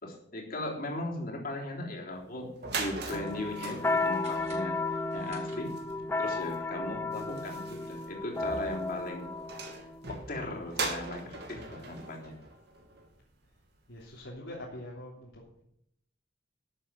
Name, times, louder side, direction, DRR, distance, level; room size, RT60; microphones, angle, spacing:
voice 1, 0.0-5.7 6.2-9.3 10.1-12.3, left 2 dB, 50° left, -1 dB, 3.5 m, -38 dB
sound 1, 2.2-2.3 2.5-13.3, right 4 dB, 60° right, 2.6 m, -41 dB
sound 2, 3.1-10.6, left 3 dB, 15° left, 0.6 m, -34 dB
sound 3, 4.2-6.1, right 3 dB, 40° right, 6.1 m, -54 dB
voice 2, 7.0-7.3 11.5-12.0 12.3-12.5 13.9-15.6, left 1 dB, 80° left, -6 dB, 3.3 m, -46 dB
13.0 x 7.5 x 7.5 m, 0.73 s
head